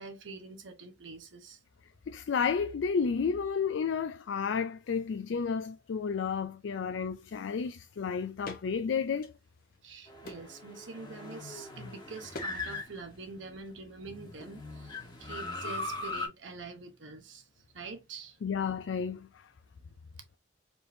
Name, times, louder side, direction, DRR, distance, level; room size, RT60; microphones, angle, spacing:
voice 1, 0.0-1.6 9.8-17.5 17.7-18.4, right 4 dB, 85° right, 0.9 m, -45 dB
voice 2, 2.1-9.4 18.4-19.5, left 6 dB, 80° left, 0.4 m, -32 dB
sound 1, 8.4-8.7 9.1-9.8 10.2-10.6 12.3-12.6 12.8-13.3 14.4-14.6, left 2 dB, 50° left, 0.9 m, -45 dB
sound 2, 10.1-13.5 14.0-16.3, left 2 dB, 25° left, 1.3 m, -40 dB
4.4 x 3.4 x 2.6 m
head